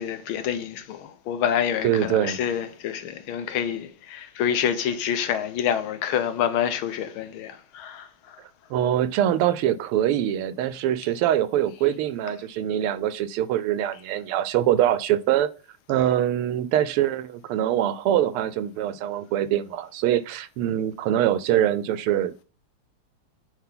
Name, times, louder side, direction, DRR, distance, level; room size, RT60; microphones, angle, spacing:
voice 1, 0.0-8.4, left 9 dB, 75° left, 1.5 m, -27 dB
voice 2, 1.8-2.4 8.7-15.5 15.9-22.4, right 11 dB, 90° right, 1.5 m, -23 dB
9.4 x 3.4 x 3.8 m
omnidirectional pair, 2.4 m